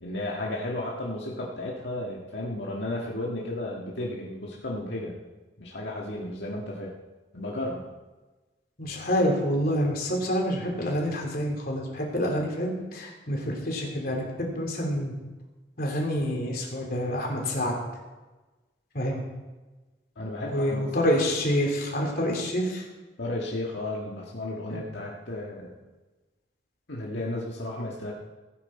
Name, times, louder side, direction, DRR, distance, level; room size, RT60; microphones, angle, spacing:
voice 1, 0.0-5.2 5.6-6.9 7.3-7.8 20.2-20.9 23.2-25.7 26.9-28.1, left 1 dB, 85° left, -3 dB, 1.7 m, -33 dB
voice 2, 8.8-15.1 15.8-17.7 18.9-19.2 20.5-22.8 24.7-24.8, equal, 55° left, -1 dB, 3.1 m, -27 dB
16.0 x 9.4 x 4.4 m, 1.2 s
head